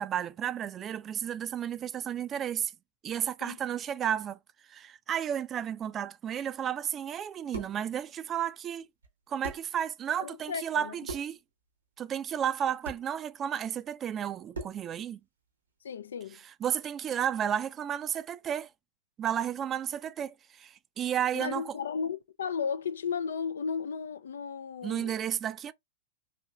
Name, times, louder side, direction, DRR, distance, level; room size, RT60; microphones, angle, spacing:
voice 1, 0.0-2.7 3.0-4.4 4.7-8.8 9.3-11.4 12.0-15.2 16.6-18.7 19.2-21.7 24.8-25.7, right 9 dB, 25° right, 0.3 m, -32 dB
sound 1, 7.2-7.9 9.0-9.1 9.4-9.8 11.0-11.4 12.8-13.1 14.5-14.9, right 3 dB, 90° right, 1.1 m, -40 dB
voice 2, 10.2-10.9 15.8-16.4 21.3-25.2, left 6 dB, 75° left, 0.4 m, -34 dB
4.2 x 2.7 x 2.3 m
hypercardioid pair, 105°, 0 cm